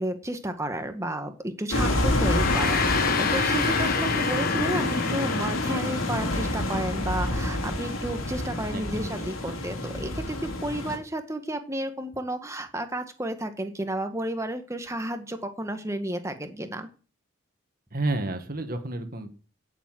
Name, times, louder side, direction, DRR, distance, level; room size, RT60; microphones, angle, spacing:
voice 1, 0.0-16.9, right 1 dB, 15° right, 7 dB, 1.7 m, -32 dB
sound 1, 1.7-11.0, left 1 dB, 85° left, 3.8 m, -27 dB
voice 2, 1.7-2.1 8.7-9.3 17.9-19.3, right 2 dB, 45° right, 7 dB, 2.0 m, -31 dB
Gong, 2.0-6.6, left 6 dB, 45° left, 1.4 m, -30 dB
16.5 x 7.3 x 7.7 m, 0.38 s
head